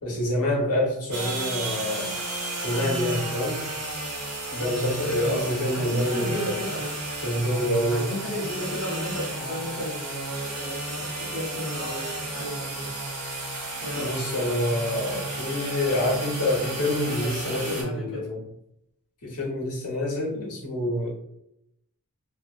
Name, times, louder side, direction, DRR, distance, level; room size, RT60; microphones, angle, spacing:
voice 1, 0.0-2.1 2.6-3.6 4.5-6.5 7.2-8.1 14.0-18.4 19.2-21.1, left 1 dB, 90° left, -3 dB, 0.9 m, -27 dB
sound 1, 1.1-17.8, right 2 dB, 85° right, 1.0 m, -33 dB
voice 2, 5.2-6.9 7.9-12.9 13.8-14.1 17.2-18.2, equal, 55° left, -10 dB, 0.9 m, -34 dB
2.5 x 2.1 x 2.4 m, 0.77 s
head